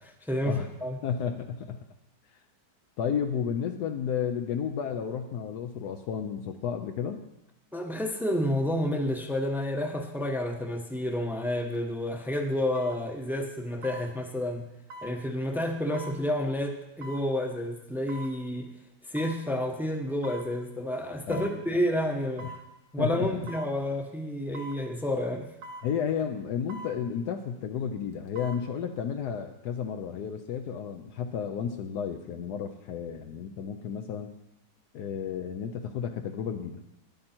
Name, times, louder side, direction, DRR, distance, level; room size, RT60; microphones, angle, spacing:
voice 1, 0.0-1.0 7.7-14.7 15.0-18.7 19.1-22.5 22.9-25.5, left 1 dB, ahead, 3 dB, 0.7 m, -30 dB
voice 2, 1.0-1.8 3.0-7.2 21.3-21.6 22.4-22.5 23.0-23.3 25.8-34.3 34.9-36.8, left 7 dB, 70° left, 5 dB, 1.2 m, -32 dB
sound 1, 11.6-11.8 12.8-13.0 13.8-14.1 14.9-15.2 15.9-16.2 17.0-17.3 18.1-18.3 19.2-19.4 20.2-20.5 21.3-21.6 22.4-22.6 23.5-23.7 24.5-24.8 25.6-25.9 26.7-27.0 28.1-28.6 29.0-29.1, right 1 dB, 85° right, 2.1 m, -42 dB
12.0 x 11.0 x 4.4 m, 0.92 s
omnidirectional pair, 1.9 m